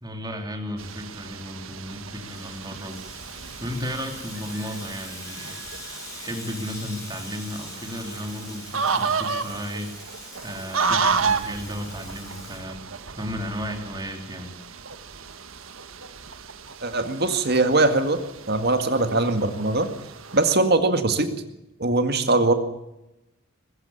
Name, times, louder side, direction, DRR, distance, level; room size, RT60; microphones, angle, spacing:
voice 1, 0.0-3.0 3.6-5.7 6.2-9.9 10.4-12.8 13.2-14.5, equal, 20° right, 4 dB, 3.2 m, -34 dB
sound 1, 0.8-20.5, right 5 dB, 85° right, 1.5 m, -32 dB
Water tap faucet / Sink (filling or washing), 1.8-13.2, left 2 dB, 15° left, 7.9 m, -43 dB
voice 2, 16.8-18.2 18.5-19.9 20.3-21.3 21.8-22.5, right 2 dB, 50° right, 8 dB, 2.0 m, -21 dB
21.5 x 15.0 x 8.6 m, 0.94 s
head